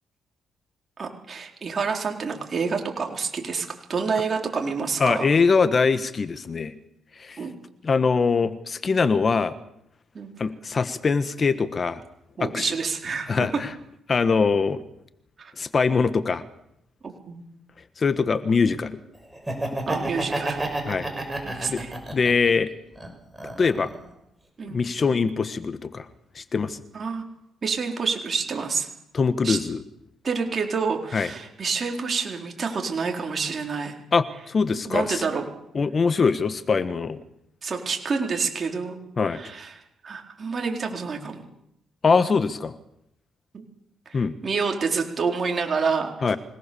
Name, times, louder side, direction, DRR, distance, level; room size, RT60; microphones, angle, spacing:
voice 1, 1.0-5.3 7.4-7.5 10.1-10.3 12.4-13.5 15.4-15.5 17.0-17.5 19.9-20.7 21.4-21.9 24.6-24.8 26.9-27.2 27.6-28.9 29.4-29.6 30.2-33.9 34.7-35.5 37.6-39.0 39.2-39.7 40.0-41.5 43.5-43.6 44.1-46.1, right 5 dB, 40° right, 2 dB, 4.1 m, -28 dB
voice 2, 5.0-6.7 7.2-7.4 7.8-9.6 10.4-12.0 12.4-12.7 13.3-13.7 14.1-14.8 15.6-16.4 18.0-19.0 20.9-21.1 21.7-21.8 22.1-22.7 23.4-23.9 24.6-26.0 26.3-26.8 29.1-29.8 31.1-31.3 34.1-35.2 35.7-37.2 39.2-39.4 42.0-42.7 44.1-44.4 46.2-46.4, left 5 dB, 40° left, 12 dB, 1.4 m, -22 dB
Laughter, 19.3-22.5 22.9-24.1, right 2 dB, 10° right, 6.1 m, -30 dB
26.0 x 18.5 x 7.1 m, 0.78 s
cardioid pair, 90°, 0 cm